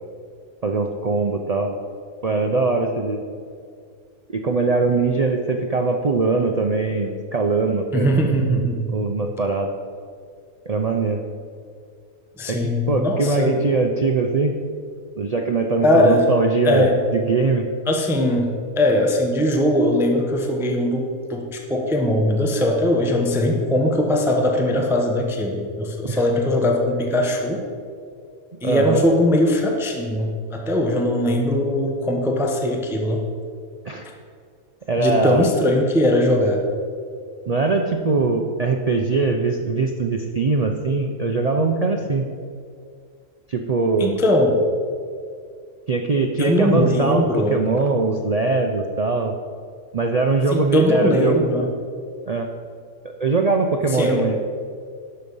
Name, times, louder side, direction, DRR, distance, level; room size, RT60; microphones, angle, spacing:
voice 1, 0.6-1.8 2.2-3.2 4.3-8.1 8.9-9.7 10.7-11.2 12.5-14.5 15.2-17.7 26.0-26.2 28.6-29.0 33.8-34.1 34.9-35.5 37.5-42.3 43.5-44.2 45.9-47.2 47.5-49.3 49.9-51.5 52.3-52.5 53.2-54.4, right 3 dB, 80° right, 3 dB, 0.3 m, -21 dB
voice 2, 7.9-8.9 12.4-13.6 15.8-16.3 16.6-17.0 17.9-27.6 28.6-33.2 35.0-36.6 44.0-44.6 46.4-47.6 50.5-51.7 53.9-54.2, left 1 dB, ahead, 2 dB, 0.7 m, -20 dB
11.0 x 6.6 x 5.4 m, 2.2 s
omnidirectional pair, 1.5 m